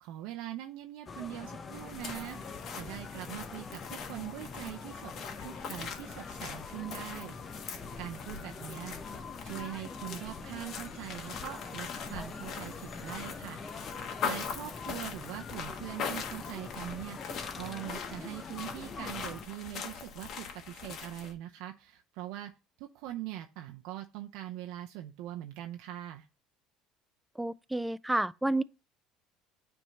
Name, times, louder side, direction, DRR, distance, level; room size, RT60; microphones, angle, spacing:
voice 1, 0.0-2.4 2.7-5.1 5.4-7.4 8.0-9.0 9.4-13.6 14.2-17.2 17.6-22.5 22.8-26.3, right 13 dB, 75° right, 0.6 m, -42 dB
sound 1, 1.1-19.4, left 4 dB, 30° left, 0.8 m, -44 dB
sound 2, 1.7-21.3, left 6 dB, 50° left, 1.4 m, -42 dB
voice 2, 27.4-28.6, right 1 dB, 5° right, 0.3 m, -30 dB
9.1 x 3.6 x 4.1 m
supercardioid pair, 105°, 0 cm